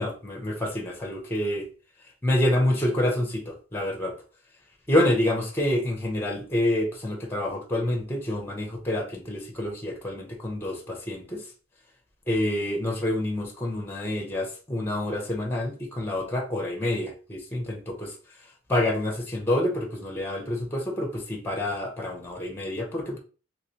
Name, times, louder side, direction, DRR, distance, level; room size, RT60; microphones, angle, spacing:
voice 1, 0.0-1.7 2.2-4.1 4.9-11.4 12.3-18.1 18.7-23.2, left 1 dB, 10° left, 2 dB, 0.7 m, -27 dB
3.1 x 3.0 x 2.8 m, 0.36 s
head